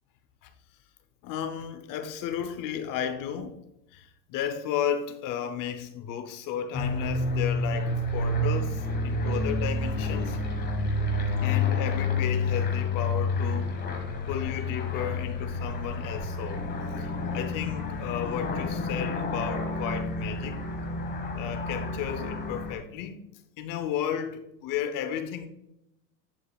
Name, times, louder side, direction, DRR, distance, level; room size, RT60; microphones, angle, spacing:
voice 1, 1.2-3.6 3.9-10.4 11.4-13.7 14.3-16.7 16.9-20.6 21.3-23.2 23.6-25.5, left 9 dB, 40° left, 0.8 m, -33 dB
sound 1, 6.7-22.8, left 2 dB, 20° left, 1.4 m, -29 dB
10.0 x 4.9 x 2.4 m
supercardioid pair, 125°, 50 cm